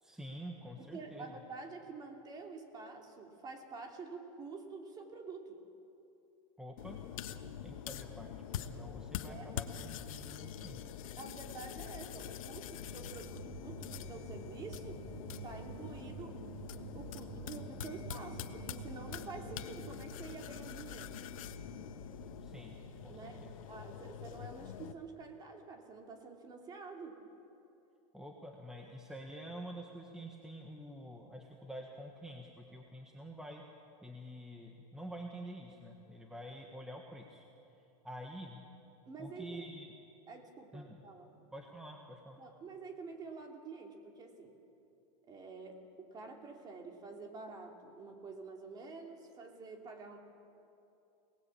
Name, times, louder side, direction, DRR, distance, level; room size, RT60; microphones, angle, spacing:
voice 1, 0.0-1.3 6.6-7.0 7.6-10.9 22.4-22.8 23.0-23.6 28.1-33.6 34.0-37.5 38.0-38.6 39.2-39.9 40.7-41.0 41.5-42.4, equal, 5° right, 1 dB, 1.5 m, -48 dB
voice 2, 0.8-5.6 9.3-9.5 11.2-15.0 15.4-16.3 16.9-21.2 23.1-23.4 23.7-27.2 39.1-39.7 40.3-41.4 42.4-44.5 45.3-50.2, right 4 dB, 25° right, 3 dB, 2.9 m, -48 dB
sound 1, 6.8-24.9, left 9 dB, 80° left, 1.4 m, -45 dB
sound 2, 12.9-23.5, right 7 dB, 45° right, 3.5 m, -55 dB
sound 3, 13.0-20.4, right 10 dB, 60° right, 1.0 m, -51 dB
28.0 x 19.5 x 8.5 m, 2.8 s
supercardioid pair, 155°, 17 cm